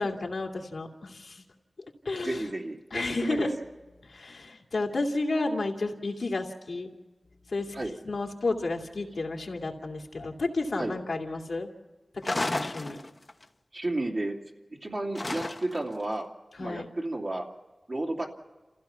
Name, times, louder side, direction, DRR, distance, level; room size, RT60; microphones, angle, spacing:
voice 1, 0.0-1.4 2.0-2.5 2.9-3.5 4.1-6.9 7.5-7.8 8.0-11.7 12.2-13.0 16.6-16.8, left 2 dB, 85° left, 2 dB, 2.5 m, -31 dB
voice 2, 2.2-3.5 7.7-7.9 10.8-11.0 13.7-14.4 14.8-16.3 16.6-17.4 17.9-18.3, right 2 dB, 55° right, -1 dB, 2.7 m, -32 dB
sound 1, 12.2-13.4 15.2-15.9, left 2 dB, 40° left, 1.1 m, -32 dB
29.0 x 15.5 x 5.8 m, 1.2 s
wide cardioid pair, 60°, 0 cm